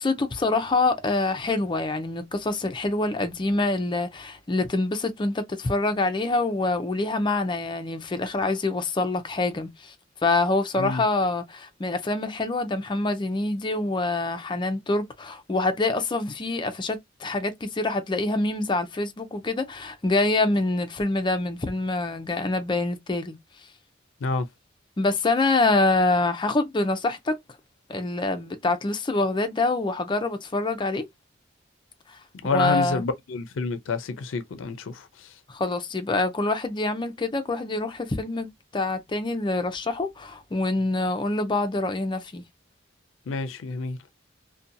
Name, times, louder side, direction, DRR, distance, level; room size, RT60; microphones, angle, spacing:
voice 1, 0.0-9.9 10.2-23.4 25.0-27.3 27.9-31.1 32.5-33.0 35.5-42.4, left 2 dB, 25° left, 0.4 m, -25 dB
voice 2, 32.4-35.4 43.3-44.0, left 4 dB, 85° left, 0.4 m, -29 dB
2.6 x 2.2 x 2.6 m
head